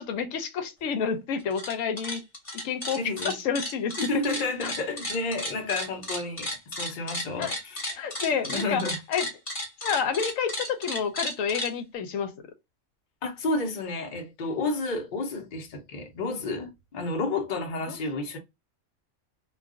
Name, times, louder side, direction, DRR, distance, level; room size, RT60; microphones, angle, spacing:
voice 1, 0.0-2.2 2.6-4.2 4.6-4.7 7.4-7.5 8.0-8.8 9.1-9.3 9.8-12.4 17.9-18.0, left 6 dB, 80° left, 1.0 m, -29 dB
sound 1, 1.4-1.7 2.0-11.7, left 1 dB, 25° left, 1.1 m, -33 dB
voice 2, 3.0-3.4 4.0-8.0 8.3-9.0 13.2-18.4, left 3 dB, 45° left, 0.8 m, -31 dB
2.4 x 2.2 x 3.5 m
omnidirectional pair, 1.4 m